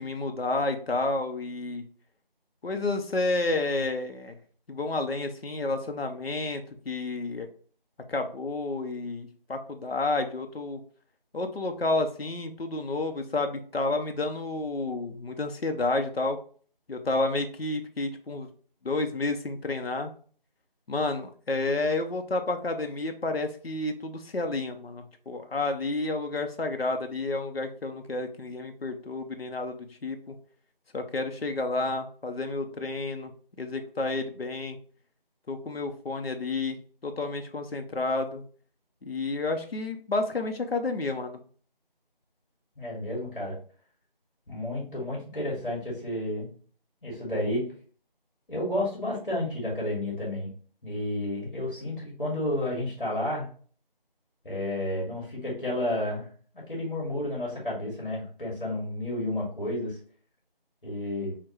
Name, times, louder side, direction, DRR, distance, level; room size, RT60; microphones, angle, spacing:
voice 1, 0.0-1.8 2.6-4.4 4.7-7.5 8.1-10.8 11.3-16.4 16.9-18.5 18.8-20.1 20.9-30.4 30.9-33.3 33.6-34.8 35.5-36.8 37.0-38.4 39.0-41.4, left 2 dB, 90° left, 6 dB, 0.8 m, -30 dB
voice 2, 42.8-43.6 44.5-46.5 47.0-47.7 48.5-50.5 50.8-53.5 54.4-56.3 56.7-60.0 60.8-61.4, left 1 dB, 65° left, -4 dB, 2.0 m, -31 dB
5.7 x 2.2 x 3.0 m, 0.44 s
figure-of-eight pair, 180°, 29 cm